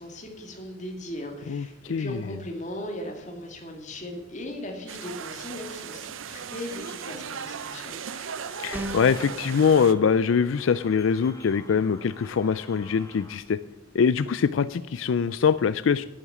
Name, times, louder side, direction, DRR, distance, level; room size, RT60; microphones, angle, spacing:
voice 1, 0.0-8.0, left 1 dB, 35° left, 2 dB, 2.2 m, -38 dB
voice 2, 1.5-2.2 8.6-13.6 13.9-16.1, left 6 dB, 85° left, 15 dB, 0.4 m, -23 dB
sound 1, 4.9-9.9, right 7 dB, 85° right, 0.6 m, -37 dB
sound 2, 6.5-13.4, left 1 dB, 15° left, 1.6 m, -50 dB
sound 3, 8.7-9.3, equal, 10° right, 1.2 m, -33 dB
10.0 x 8.6 x 8.3 m, 1.1 s
head